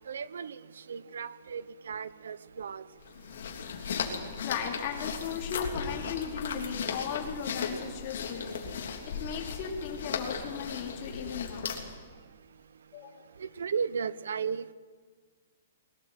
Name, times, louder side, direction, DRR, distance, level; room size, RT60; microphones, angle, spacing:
voice 1, 0.1-0.5 0.9-2.8 13.4-14.7, right 6 dB, 85° right, 17 dB, 0.9 m, -35 dB
sound 1, 3.0-12.0, left 6 dB, 60° left, 3.3 m, -36 dB
voice 2, 4.4-8.9 9.2-11.7 12.9-13.2, left 6 dB, 25° left, -2 dB, 3.1 m, -37 dB
22.0 x 18.0 x 8.0 m, 1.5 s
hypercardioid pair, 175°, 0 cm